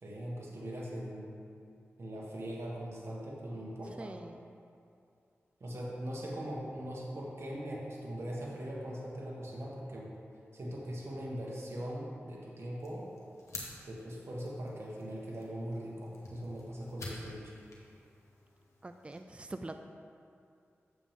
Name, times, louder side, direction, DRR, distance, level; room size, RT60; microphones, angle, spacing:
voice 1, 0.0-1.3 2.0-4.2 5.6-10.1 10.5-13.1 13.8-17.6, equal, 65° right, -4 dB, 1.4 m, -40 dB
voice 2, 4.0-4.6 18.8-19.8, right 2 dB, 25° right, 7 dB, 0.4 m, -44 dB
sound 1, 12.8-19.2, left 2 dB, 85° left, 1.4 m, -50 dB
8.4 x 7.0 x 3.7 m, 2.5 s
cardioid pair, 50°, 5 cm